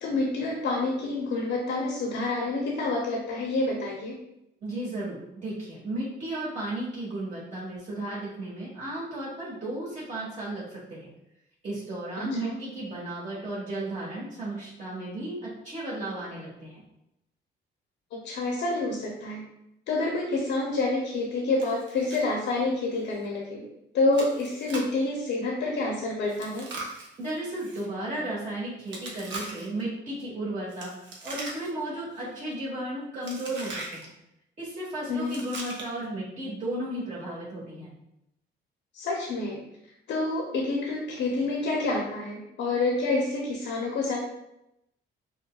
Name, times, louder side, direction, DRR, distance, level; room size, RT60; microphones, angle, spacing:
voice 1, 0.0-4.2 12.2-12.6 18.1-19.4 19.9-23.7 23.9-26.7 35.1-35.4 38.9-39.6 40.1-44.2, left 2 dB, 70° left, -2 dB, 0.8 m, -28 dB
voice 2, 4.6-11.1 11.6-16.8 27.2-30.9 31.2-34.1 34.6-37.9, right 1 dB, 40° right, -8 dB, 1.3 m, -34 dB
Chewing mastication, 21.6-22.3 22.5-22.6 23.1-23.3 24.1-25.0 26.3-27.9 28.9-29.8 30.7-31.9 32.2-32.5 33.2-34.1 35.2-36.1, right 2 dB, 65° right, 0.9 m, -40 dB
5.2 x 2.2 x 2.3 m, 0.84 s
cardioid pair, 90°, 20 cm